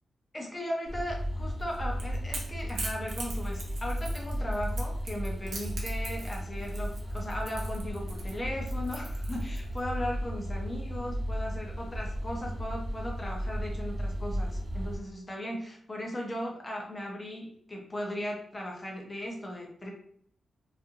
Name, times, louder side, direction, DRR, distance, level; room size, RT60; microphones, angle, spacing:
voice 1, 0.3-19.9, left 1 dB, 20° left, -1 dB, 0.6 m, -37 dB
sound 1, 0.9-15.0, equal, 20° right, 0.8 m, -34 dB
Crackle / Crack, 1.6-9.8, right 3 dB, 65° right, 0.7 m, -42 dB
2.6 x 2.4 x 2.8 m, 0.66 s
wide cardioid pair, 160°, 0 cm